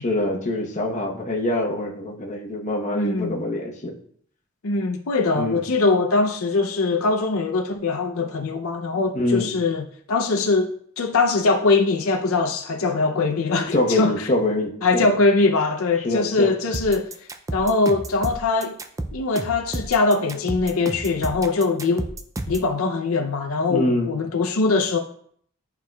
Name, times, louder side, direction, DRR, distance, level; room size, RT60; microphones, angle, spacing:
voice 1, 0.0-3.9 5.3-5.6 9.1-9.6 13.7-15.1 16.0-16.5 23.7-24.2, left 1 dB, 35° left, 1.0 m, -24 dB
voice 2, 2.9-3.4 4.6-14.3 14.8-17.1 17.5-18.8 19.1-22.1 22.5-25.0, left 3 dB, 80° left, 0.6 m, -22 dB
sound 1, 16.7-22.7, right 1 dB, 15° right, 0.4 m, -31 dB
11.5 x 4.6 x 2.3 m
head